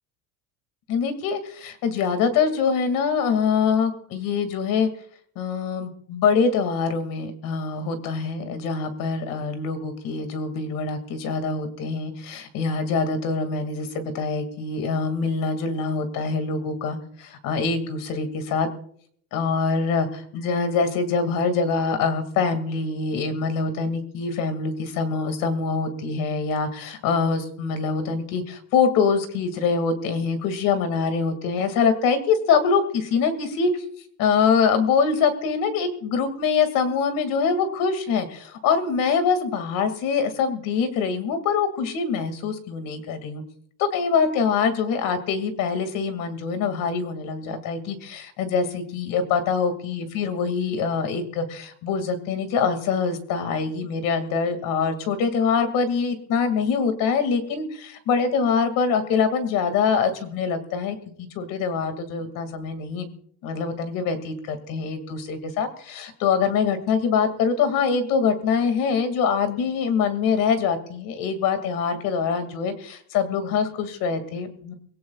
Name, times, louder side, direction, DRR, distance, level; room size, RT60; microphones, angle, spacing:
voice 1, 0.9-4.9 5.4-18.7 19.3-33.7 34.2-43.4 43.8-63.1 63.4-74.7, left 5 dB, 60° left, 9 dB, 2.3 m, -24 dB
22.5 x 17.0 x 2.4 m, 0.63 s
cardioid pair, 160°, 37 cm